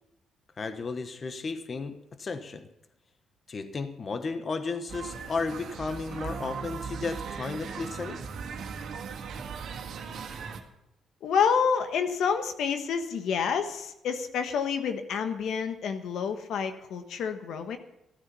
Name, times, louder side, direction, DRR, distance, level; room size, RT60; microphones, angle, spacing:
voice 1, 0.6-2.7 3.5-8.2, left 4 dB, 40° left, 9 dB, 1.1 m, -34 dB
sound 1, 4.9-10.6, right 6 dB, 70° right, 1.8 m, -38 dB
voice 2, 11.2-17.8, left 6 dB, 75° left, 8 dB, 1.2 m, -28 dB
15.0 x 9.4 x 7.0 m, 0.86 s
cardioid pair, 90°, 0 cm